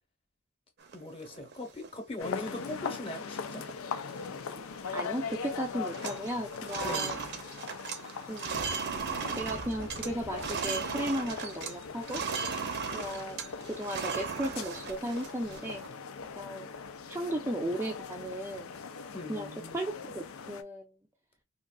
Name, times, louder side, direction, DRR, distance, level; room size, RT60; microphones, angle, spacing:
sound 1, 0.8-1.9 2.3-2.4 2.7-3.1 3.5-3.7 4.0-5.1 5.3-5.6 5.8-11.7 12.0-15.9, right 6 dB, 55° right, 0.6 m, -37 dB
voice 1, 0.9-3.6 6.8-7.2 19.1-19.8, left 2 dB, 30° left, 1.0 m, -40 dB
sound 2, 2.2-20.6, left 5 dB, 90° left, 0.5 m, -41 dB
voice 2, 4.9-7.2 8.3-8.5 9.4-12.2 12.9-13.4 13.7-15.8 16.4-16.7 17.1-18.7 19.3-20.8, right 1 dB, 10° right, 0.4 m, -35 dB
sound 3, 8.5-15.2 15.6-15.7 16.2-16.3 16.8-17.0, left 1 dB, 55° left, 0.9 m, -50 dB
3.6 x 2.4 x 2.3 m
head